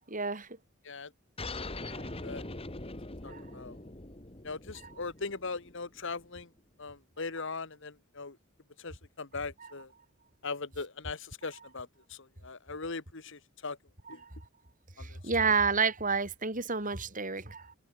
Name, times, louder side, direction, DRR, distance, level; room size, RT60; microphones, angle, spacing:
voice 1, 0.1-0.6 1.9-2.0 3.2-3.4 4.7-4.9 7.4-7.5 9.6-9.7 14.0-14.3 15.0-17.7, right 5 dB, 40° right, 6.0 m, -31 dB
sound 1, 1.4-6.4, left 2 dB, 30° left, 2.1 m, -42 dB
voice 2, 3.2-3.8 4.4-6.5 6.8-8.3 8.8-9.9 10.4-13.8 14.1-14.2 15.0-15.1, left 4 dB, 65° left, 1.6 m, -40 dB
head